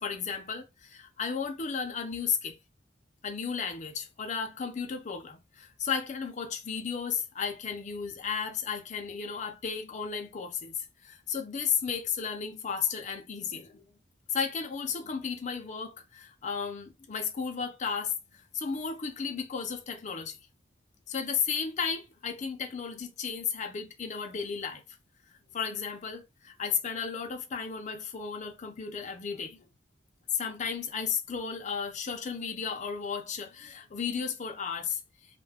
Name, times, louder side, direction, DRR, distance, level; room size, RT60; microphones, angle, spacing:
voice 1, 0.0-2.6 3.2-13.9 14.3-20.4 21.1-24.8 25.5-29.6 30.3-35.0, left 6 dB, 40° left, 0.5 m, -34 dB
2.3 x 2.2 x 3.3 m
head